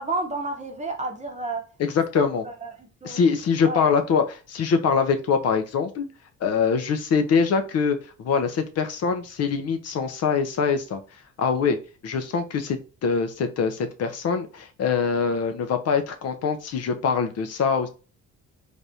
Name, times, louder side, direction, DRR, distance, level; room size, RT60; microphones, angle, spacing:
voice 1, 0.0-1.6 2.1-3.2 3.6-4.0, right 2 dB, 25° right, 3 dB, 0.8 m, -31 dB
voice 2, 1.8-2.4 3.0-6.1 6.4-11.0 11.4-11.8 12.0-17.9, left 5 dB, 55° left, 8 dB, 0.5 m, -23 dB
3.3 x 2.5 x 2.7 m, 0.35 s
cardioid pair, 90°, 30 cm